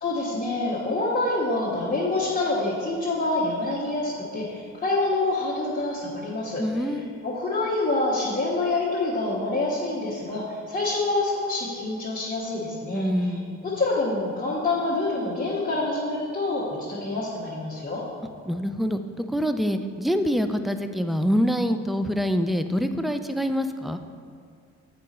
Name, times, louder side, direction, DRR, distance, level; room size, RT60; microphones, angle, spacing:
voice 1, 0.0-6.9 7.2-13.4 13.6-18.0, left 2 dB, 30° left, -7 dB, 1.4 m, -27 dB
voice 2, 6.6-7.1 12.9-13.6 18.5-24.0, equal, ahead, 8 dB, 0.3 m, -25 dB
7.7 x 5.1 x 4.2 m, 2.3 s
cardioid pair, 90°, 30 cm